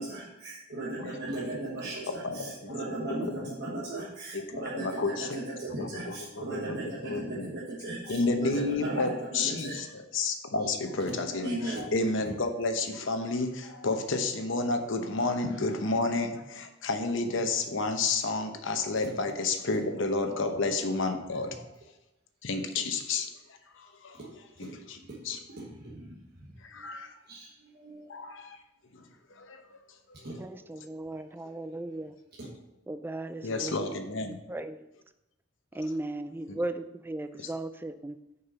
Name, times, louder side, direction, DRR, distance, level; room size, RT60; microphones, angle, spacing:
voice 1, 0.0-4.9 5.3-9.0 9.3-9.8 11.1-11.2 11.4-11.9 19.0-19.1 24.1-24.3 24.6-24.7 25.1-25.2 25.6-26.2 27.3-27.5 27.7-28.1 30.2-30.3 32.4-32.5, right 2 dB, 55° right, 1.4 m, -37 dB
voice 2, 0.8-1.3 1.8-3.5 4.3-5.4 5.8-7.5 8.0-21.6 22.4-23.3 23.7-25.4 26.6-27.2 28.1-28.6 28.9-29.8 33.4-34.4 35.7-35.9 36.5-36.6 37.4-37.5, left 3 dB, 65° left, 0.9 m, -31 dB
voice 3, 30.4-32.1 32.9-33.7 34.5-34.8 35.7-38.2, right 2 dB, 10° right, 0.3 m, -36 dB
6.7 x 5.4 x 5.7 m
head